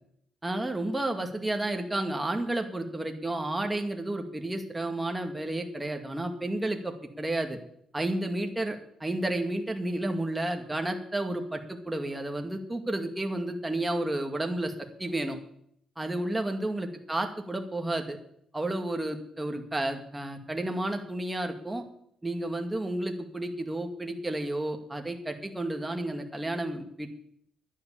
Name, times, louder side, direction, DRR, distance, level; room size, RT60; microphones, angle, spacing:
voice 1, 0.4-7.6 7.9-14.7 15.0-15.4 16.0-18.2 18.5-21.8 22.2-27.1, right 1 dB, 10° right, 4 dB, 2.2 m, -31 dB
11.0 x 10.0 x 7.2 m, 0.70 s
cardioid pair, 90°, 0 cm